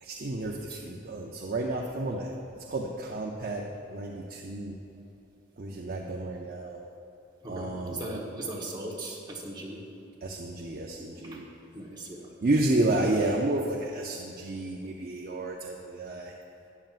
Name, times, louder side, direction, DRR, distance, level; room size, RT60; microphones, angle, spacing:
voice 1, 0.0-2.3 2.7-3.6 3.9-4.7 5.6-6.9 7.5-8.0 10.2-11.5 12.4-16.3, right 2 dB, 45° right, -1 dB, 0.6 m, -31 dB
voice 2, 7.4-9.8 11.2-11.4 11.7-12.3, right 1 dB, 20° right, -3 dB, 1.2 m, -38 dB
13.0 x 8.9 x 2.5 m, 2.9 s
head